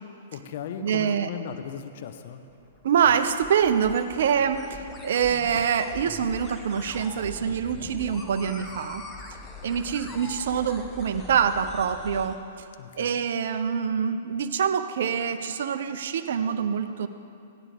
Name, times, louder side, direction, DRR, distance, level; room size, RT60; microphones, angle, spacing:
voice 1, 0.3-2.4 12.8-13.2, left 8 dB, 55° left, 7 dB, 0.8 m, -37 dB
voice 2, 0.8-1.3 2.8-9.0 9.6-12.4 13.0-17.1, right 7 dB, 60° right, 10 dB, 0.6 m, -25 dB
sound 1, 2.5-12.4, left 3 dB, 20° left, 1.2 m, -42 dB
16.0 x 11.0 x 3.4 m, 2.6 s
figure-of-eight pair, 110°, 0 cm